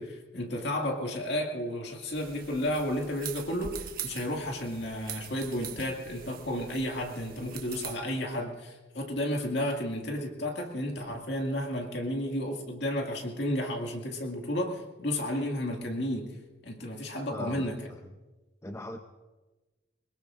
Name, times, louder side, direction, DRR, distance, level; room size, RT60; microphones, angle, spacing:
voice 1, 0.0-16.4 16.6-17.9, left 1 dB, 60° left, 2 dB, 2.2 m, -32 dB
sound 1, 2.1-8.0, right 8 dB, 50° right, 1.2 m, -43 dB
voice 2, 17.3-18.0 18.6-19.0, left 1 dB, 15° left, 5 dB, 0.6 m, -40 dB
23.0 x 20.5 x 2.6 m, 1.2 s
head